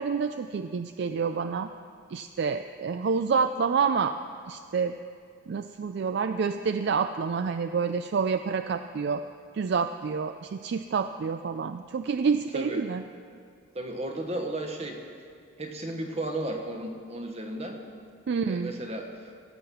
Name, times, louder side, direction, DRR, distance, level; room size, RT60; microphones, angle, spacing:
voice 1, 0.0-1.7 2.1-4.2 4.5-4.9 5.5-9.2 9.5-13.0 18.3-18.7, right 5 dB, 55° right, 9 dB, 0.3 m, -28 dB
voice 2, 13.7-15.0 15.6-17.8 18.4-19.3, right 1 dB, 30° right, 3 dB, 1.2 m, -34 dB
16.0 x 7.6 x 6.9 m, 2.3 s
head